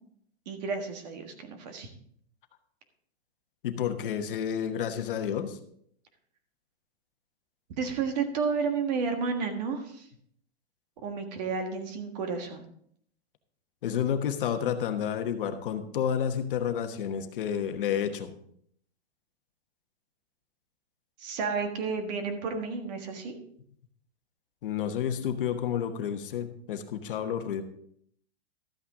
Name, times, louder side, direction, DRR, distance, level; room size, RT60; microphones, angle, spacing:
voice 1, 0.4-1.9 7.8-10.1 11.0-12.6 21.2-23.4, right 5 dB, 40° right, 5 dB, 1.6 m, -31 dB
voice 2, 3.6-5.6 13.8-18.3 24.6-27.6, left 8 dB, 55° left, 7 dB, 1.2 m, -30 dB
13.0 x 8.7 x 3.7 m, 0.66 s
hypercardioid pair, 170°, 33 cm